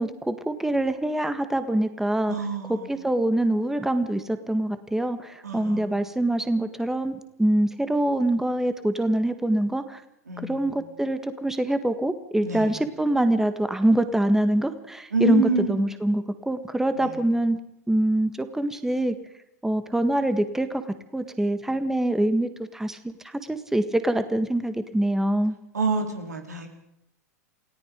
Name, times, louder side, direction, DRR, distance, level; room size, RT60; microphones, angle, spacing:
voice 1, 0.0-2.3 2.7-10.0 10.4-17.6 17.9-19.2 19.6-20.8 21.1-23.0 23.2-25.6, right 1 dB, 5° right, 10 dB, 1.7 m, -24 dB
voice 2, 2.3-3.0 5.4-6.0 10.3-10.7 12.4-12.7 15.1-15.9 17.0-17.1 25.7-26.7, right 4 dB, 85° right, 4 dB, 3.9 m, -28 dB
29.0 x 17.5 x 5.3 m, 0.79 s
hypercardioid pair, 95°, 9 cm